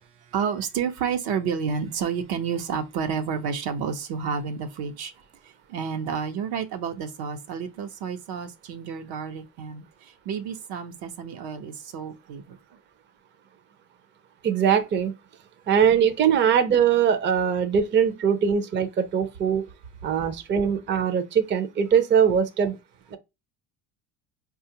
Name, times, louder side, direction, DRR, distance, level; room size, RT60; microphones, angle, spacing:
voice 1, 0.3-5.1 5.7-12.6, right 6 dB, 70° right, 0.8 m, -30 dB
voice 2, 14.4-15.1 15.7-19.7 20.0-22.8 23.1-23.2, right 7 dB, 30° right, 0.5 m, -21 dB
4.6 x 2.4 x 2.8 m
supercardioid pair, 85°, 40 cm